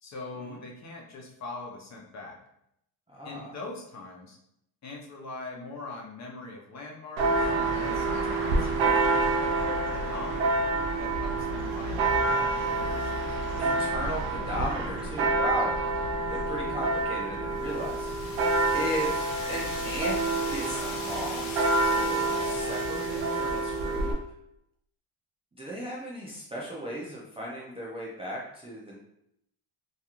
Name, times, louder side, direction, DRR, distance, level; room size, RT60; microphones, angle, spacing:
voice 1, 0.0-2.4 3.2-4.4 4.8-7.5 7.8-9.6 9.9-10.6 11.0-13.1, left 3 dB, 35° left, 0 dB, 0.5 m, -42 dB
voice 2, 3.1-3.5 13.6-18.1 18.7-20.2 20.5-24.1 25.6-29.0, equal, 15° right, -6 dB, 0.3 m, -36 dB
Church bell, 7.2-24.1, right 3 dB, 70° right, 0.6 m, -28 dB
sound 1, 17.5-24.1, left 3 dB, 70° left, 0.7 m, -41 dB
2.3 x 2.3 x 2.9 m, 0.77 s
cardioid pair, 105°, 48 cm